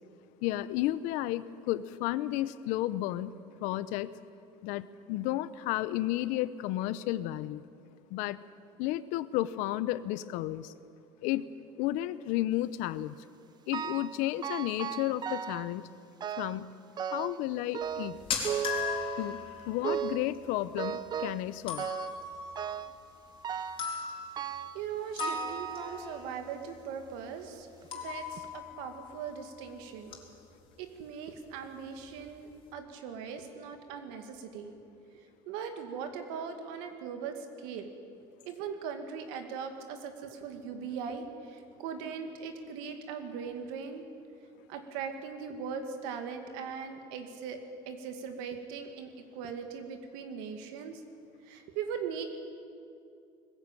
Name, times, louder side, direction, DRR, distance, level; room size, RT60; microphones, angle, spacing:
voice 1, 0.4-3.3 3.6-4.1 4.6-7.6 8.1-8.4 8.8-10.7 11.2-11.5 11.8-13.1 13.7-15.9 16.3-16.8 17.0-18.2 19.2-19.4 19.7-21.9, left 15 dB, 75° left, 16 dB, 0.8 m, -32 dB
sound 1, 13.7-14.2 14.4-15.7 16.2-16.6 17.0-17.4 17.7-19.4 19.8-20.3 20.8-21.5 21.8-22.2 22.6-23.0 23.4-23.9 24.4-24.8 25.2-26.3 26.9-27.0 27.8-27.9 28.4-28.5, right 8 dB, 35° right, 0.6 m, -36 dB
sound 2, 17.8-29.8 30.0-30.4 30.7-30.9 31.5-31.6 31.8-32.4, left 6 dB, 40° left, 3.8 m, -40 dB
voice 2, 24.7-30.2 30.8-34.7 35.1-37.9 38.4-44.0 44.7-47.6 47.9-51.0 51.4-52.2, right 6 dB, 90° right, 6 dB, 2.3 m, -40 dB
20.5 x 15.0 x 9.0 m, 2.5 s
cardioid pair, 130°, 13 cm